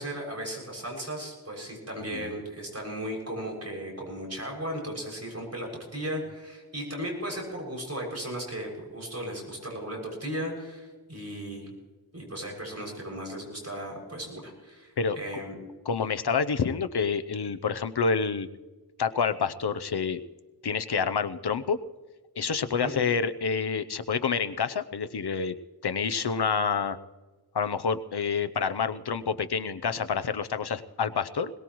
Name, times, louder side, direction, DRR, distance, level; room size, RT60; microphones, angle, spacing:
voice 1, 0.0-11.7 12.1-15.6 22.7-22.9, equal, 40° right, -1 dB, 6.6 m, -36 dB
voice 2, 2.0-2.3 15.0-15.2 15.9-18.5 19.0-20.2 20.6-21.8 22.4-25.6 25.8-27.0 27.5-31.5, left 5 dB, 85° left, 11 dB, 0.8 m, -28 dB
21.5 x 19.5 x 3.1 m, 1.3 s
wide cardioid pair, 50°, 38 cm